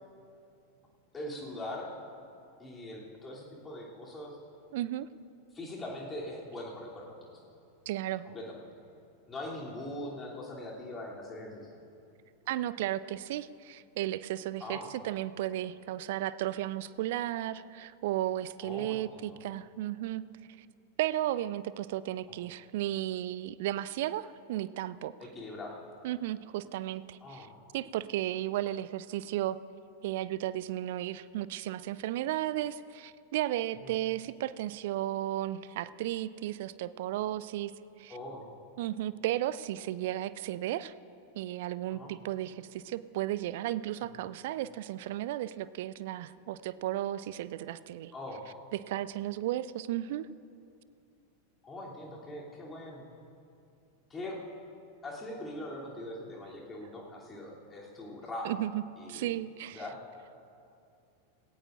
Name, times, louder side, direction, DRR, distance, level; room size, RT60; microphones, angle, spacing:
voice 1, 1.1-1.9 2.6-4.4 5.5-7.4 8.2-8.6 9.3-11.8 14.6-14.9 18.6-19.4 25.2-25.8 27.2-27.5 33.8-34.0 38.1-38.5 41.9-42.1 48.1-48.4 51.6-53.1 54.1-54.4 55.0-58.6 59.0-59.3 59.7-60.0, left 1 dB, 15° left, -4 dB, 2.9 m, -42 dB
voice 2, 4.7-5.1 7.9-8.2 12.5-20.2 21.0-25.1 26.0-27.5 27.7-29.6 30.0-37.7 38.0-38.1 38.8-40.9 41.3-48.1 48.9-50.3 58.4-58.8 59.1-59.8, right 13 dB, 50° right, 17 dB, 0.3 m, -34 dB
18.0 x 17.5 x 2.5 m, 2.6 s
figure-of-eight pair, 90°, 0 cm